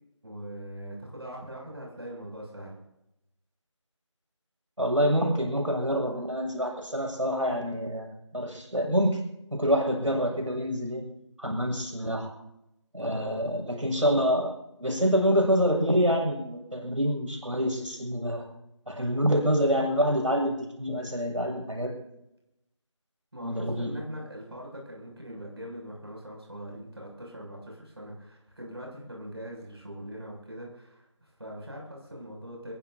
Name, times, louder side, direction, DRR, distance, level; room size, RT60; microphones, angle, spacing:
voice 1, 0.2-2.8 13.0-13.5 23.3-32.7, equal, 55° right, -2 dB, 7.5 m, -42 dB
voice 2, 4.8-9.2 9.5-11.0 11.4-12.3 12.9-14.5 14.8-18.5 18.9-21.9 23.4-23.9, equal, 85° right, 1 dB, 7.0 m, -26 dB
22.5 x 22.0 x 2.9 m, 0.86 s
figure-of-eight pair, 170°, 16 cm